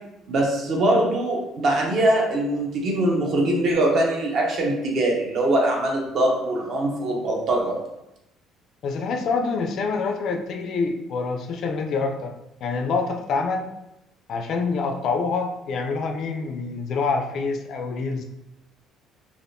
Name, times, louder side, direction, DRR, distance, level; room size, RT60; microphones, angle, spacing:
voice 1, 0.3-7.8, right 1 dB, 40° right, -1 dB, 0.5 m, -22 dB
voice 2, 8.8-12.3 12.6-13.7 14.3-18.2, left 4 dB, 45° left, 5 dB, 0.3 m, -26 dB
3.3 x 2.4 x 2.6 m, 0.89 s
cardioid pair, 180°, 0 cm